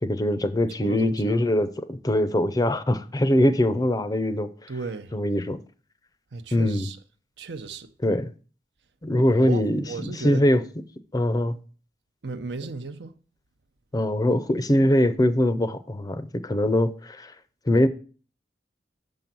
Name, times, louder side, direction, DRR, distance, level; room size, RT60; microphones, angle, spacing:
voice 1, 0.0-4.5 5.1-5.6 6.5-6.9 8.0-8.3 9.0-10.6 11.1-11.6 13.9-17.3 17.7-17.9, left 1 dB, 20° left, 0.5 m, -22 dB
voice 2, 0.8-1.4 4.7-5.1 6.3-7.0 7.4-7.9 9.1-10.5 12.2-13.1, right 4 dB, 75° right, 0.7 m, -35 dB
6.7 x 5.4 x 6.0 m
head